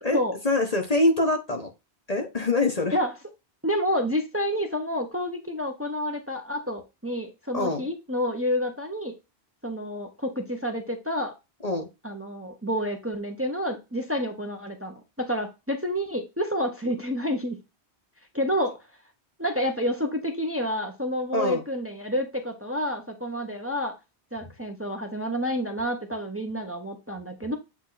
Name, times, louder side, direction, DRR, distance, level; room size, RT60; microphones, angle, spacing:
voice 1, 0.4-1.7 2.1-3.0 7.5-7.9 11.6-11.9 21.3-21.6, left 2 dB, 35° left, 3 dB, 1.3 m, -24 dB
voice 2, 3.6-9.2 9.6-11.3 12.0-17.6 18.3-18.8 19.4-23.9 24.3-27.6, equal, 15° right, 3 dB, 1.2 m, -29 dB
8.5 x 3.6 x 4.0 m, 0.24 s
omnidirectional pair, 1.1 m